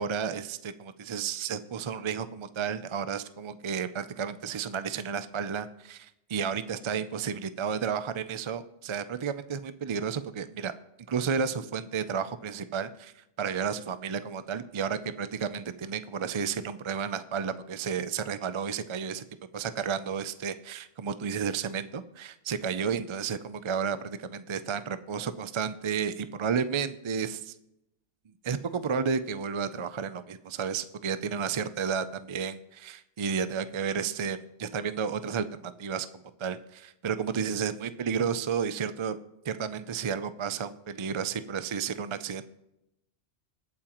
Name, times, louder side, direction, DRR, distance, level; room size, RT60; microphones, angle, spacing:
voice 1, 0.0-10.7 11.1-13.1 13.4-19.2 19.5-27.5 28.4-36.1 36.4-39.2 39.4-42.4, right 6 dB, 40° right, 12 dB, 0.4 m, -32 dB
21.5 x 8.8 x 3.0 m, 0.87 s
omnidirectional pair, 1.2 m